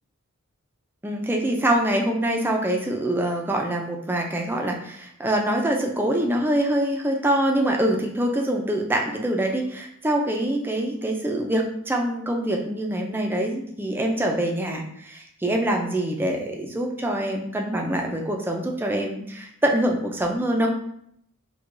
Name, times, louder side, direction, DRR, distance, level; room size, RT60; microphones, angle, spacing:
voice 1, 1.0-20.8, right 1 dB, 10° right, 1 dB, 0.4 m, -24 dB
4.5 x 2.2 x 2.5 m, 0.71 s
head